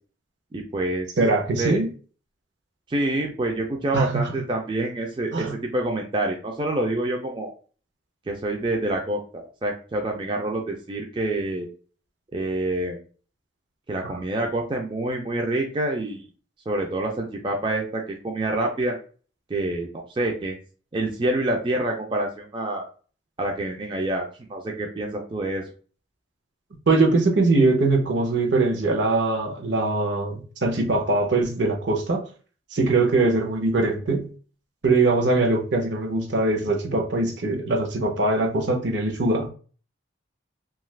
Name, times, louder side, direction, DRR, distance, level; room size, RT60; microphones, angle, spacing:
voice 1, 0.5-1.1 1.6-1.8 2.9-7.5 8.3-11.7 12.3-13.0 13.9-16.3 16.7-18.9 19.5-20.6 20.9-22.9 23.4-25.6, right 1 dB, 25° right, 1 dB, 0.3 m, -27 dB
voice 2, 1.2-1.9 3.9-4.3 5.3-5.6 14.0-14.1 26.9-32.2 32.7-34.3 34.8-39.5, right 3 dB, 65° right, 3 dB, 0.7 m, -22 dB
2.7 x 2.3 x 3.1 m, 0.39 s
head